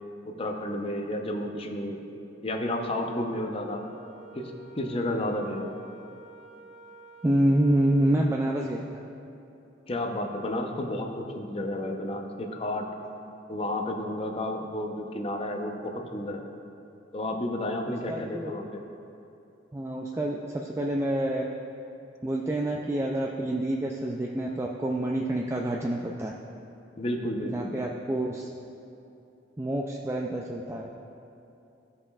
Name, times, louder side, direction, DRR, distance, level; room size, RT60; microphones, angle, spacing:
voice 1, 0.3-2.0 2.4-3.8 4.3-4.4 4.7-5.7 9.9-12.9 13.5-16.4 17.1-18.8 27.0-27.8, left 1 dB, 30° left, 3 dB, 0.7 m, -31 dB
Wind instrument woodwind instrument, 3.6-8.5, right 3 dB, 40° right, 1.0 m, -50 dB
voice 2, 7.2-8.8 17.9-18.5 19.7-21.4 22.2-26.3 27.4-28.5 29.6-30.9, right 1 dB, 15° right, -1 dB, 0.3 m, -27 dB
16.0 x 5.5 x 2.4 m, 2.8 s
head